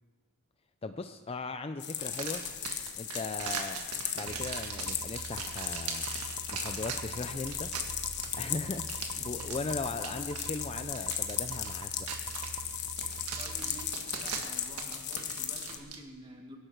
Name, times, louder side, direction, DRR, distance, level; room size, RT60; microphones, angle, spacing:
voice 1, 0.8-2.4 3.0-3.8 4.2-6.1 6.5-7.7 8.4-12.1, left 3 dB, 25° left, 9 dB, 0.4 m, -38 dB
sound 1, 1.8-15.8, left 9 dB, 50° left, 1.2 m, -37 dB
sound 2, 2.0-16.0, right 6 dB, 85° right, 1.7 m, -41 dB
sound 3, 4.3-13.9, right 5 dB, 65° right, 0.5 m, -46 dB
voice 2, 9.5-10.3 13.4-16.6, right 1 dB, 20° right, 1 dB, 2.1 m, -50 dB
24.0 x 11.5 x 4.6 m, 1.5 s
head